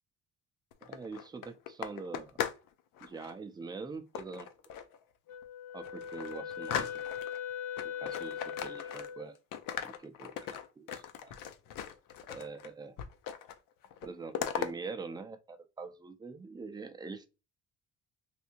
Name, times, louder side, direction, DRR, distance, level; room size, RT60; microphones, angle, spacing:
sound 1, 0.7-2.7 3.0-3.3 4.1-5.0 5.4-5.5 5.8-7.4 7.8-9.3 9.5-12.7 13.0-13.6 13.8-14.7, left 9 dB, 75° left, 0.6 m, -39 dB
voice 1, 0.8-2.3 3.0-4.5 5.7-7.0 8.0-9.4 9.8-11.3 12.3-13.0 14.0-17.3, right 4 dB, 15° right, 0.4 m, -44 dB
Wind instrument woodwind instrument, 5.3-9.3, left 8 dB, 55° left, 1.0 m, -40 dB
3.4 x 2.7 x 2.7 m
cardioid pair, 120°, 33 cm